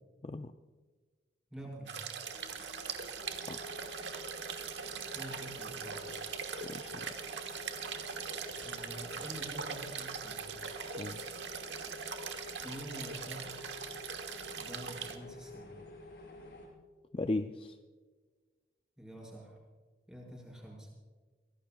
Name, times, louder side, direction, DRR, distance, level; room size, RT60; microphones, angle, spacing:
voice 1, 0.2-0.5 3.5-3.8 6.6-7.1 10.8-11.2 17.1-17.8, left 2 dB, 30° left, 7 dB, 0.4 m, -37 dB
voice 2, 1.5-1.9 5.1-6.0 8.6-10.4 12.6-13.5 14.6-15.7 19.0-19.6 20.1-20.9, equal, 5° right, -3 dB, 5.3 m, -47 dB
sound 1, 1.9-15.2, right 6 dB, 90° right, 1.4 m, -41 dB
sound 2, 2.2-16.7, left 2 dB, 90° left, 5.9 m, -50 dB
23.5 x 17.5 x 2.3 m, 1.4 s
head